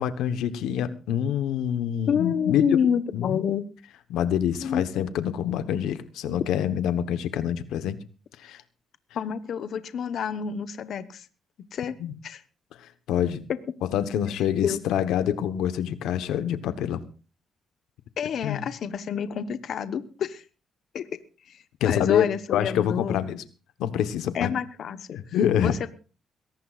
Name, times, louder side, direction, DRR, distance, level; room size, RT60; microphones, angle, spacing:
voice 1, 0.0-2.8 3.1-3.4 4.1-8.0 8.4-8.6 12.0-12.1 12.8-13.5 13.9-17.0 18.4-18.7 21.8-23.4 23.8-24.5 25.1-25.7, left 9 dB, 85° left, 11 dB, 1.1 m, -26 dB
voice 2, 2.1-3.7 4.6-4.8 9.1-11.3 11.7-12.0 12.2-12.4 14.6-14.8 18.2-20.4 20.9-21.1 21.5-23.2 24.3-25.9, left 8 dB, 65° left, 11 dB, 1.0 m, -28 dB
22.0 x 18.0 x 2.5 m, 0.35 s
cardioid pair, 90°, 0 cm